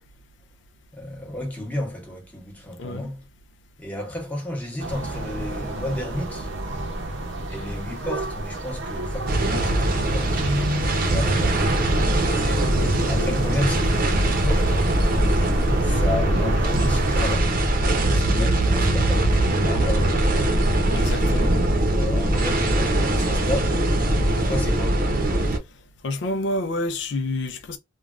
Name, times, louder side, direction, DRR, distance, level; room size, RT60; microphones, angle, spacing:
voice 1, 0.9-3.2 3.8-6.5 7.5-11.7 13.1-14.8 15.8-20.6 21.9-23.8 24.3-25.0, left 1 dB, 10° left, 0.9 m, -33 dB
sound 1, 4.8-17.4, right 1 dB, 85° right, 0.7 m, -31 dB
sound 2, 9.3-25.6, right 1 dB, 50° right, 0.7 m, -21 dB
voice 2, 20.9-21.7 26.0-27.8, left 2 dB, 65° left, 0.4 m, -28 dB
3.3 x 2.2 x 2.4 m
head